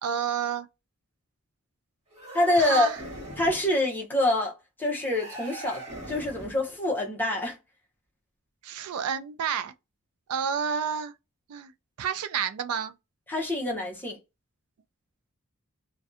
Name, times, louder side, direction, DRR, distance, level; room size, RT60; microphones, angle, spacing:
voice 1, 0.0-0.7 2.6-2.9 8.6-9.7 10.3-11.1 11.5-11.7 12.0-12.9, right 7 dB, 85° right, 0.4 m, -29 dB
sound 1, 2.1-3.7 5.1-6.7, right 1 dB, 30° right, 1.2 m, -40 dB
voice 2, 2.3-2.9 3.4-5.8 6.1-7.6 13.3-14.2, left 1 dB, 10° left, 0.6 m, -26 dB
2.5 x 2.2 x 2.4 m
head